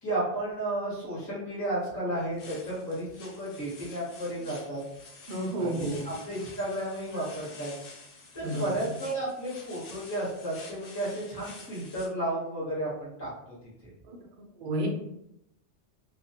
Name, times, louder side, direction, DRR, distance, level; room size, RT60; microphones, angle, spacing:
voice 1, 0.0-4.8 5.6-7.7 8.3-13.3, right 1 dB, 15° left, -6 dB, 0.8 m, -33 dB
sound 1, 2.2-12.1, left 3 dB, 70° left, 0.8 m, -49 dB
voice 2, 5.3-6.1 8.4-8.8 14.0-14.9, right 1 dB, 55° right, 0 dB, 0.6 m, -32 dB
2.2 x 2.2 x 2.7 m, 0.80 s
omnidirectional pair, 1.2 m